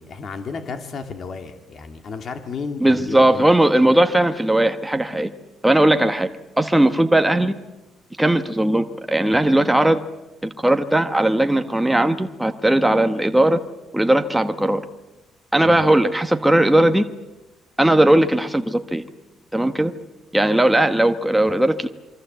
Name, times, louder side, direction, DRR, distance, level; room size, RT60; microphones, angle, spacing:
voice 1, 0.0-3.5 3.8-3.9 15.6-15.8, left 5 dB, 40° left, 6 dB, 2.5 m, -33 dB
voice 2, 2.8-5.3 5.6-6.3 6.6-7.5 8.2-10.0 10.4-13.6 13.9-14.8 15.5-17.0 17.8-19.0 19.5-19.9 20.3-21.9, right 1 dB, 5° right, 7 dB, 1.1 m, -18 dB
27.5 x 23.5 x 8.1 m, 1.0 s
cardioid pair, 155°, 0 cm